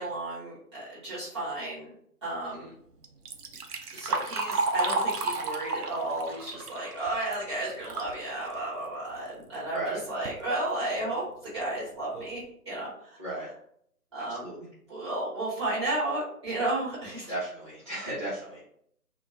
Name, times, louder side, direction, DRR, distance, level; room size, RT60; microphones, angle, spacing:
voice 1, 0.0-1.9 2.2-2.7 3.9-11.2 11.5-13.2 14.1-14.5 14.9-17.3, right 2 dB, 20° right, -10 dB, 1.1 m, -33 dB
Liquid, 3.0-8.2 8.6-8.7 9.5-9.6 10.1-10.4 11.0-11.1 11.6-11.7 12.1-12.4, right 3 dB, 80° right, 0.6 m, -32 dB
voice 2, 17.3-18.6, right 1 dB, 20° left, -13 dB, 0.6 m, -34 dB
2.3 x 2.2 x 3.6 m, 0.67 s
figure-of-eight pair, 150°, 46 cm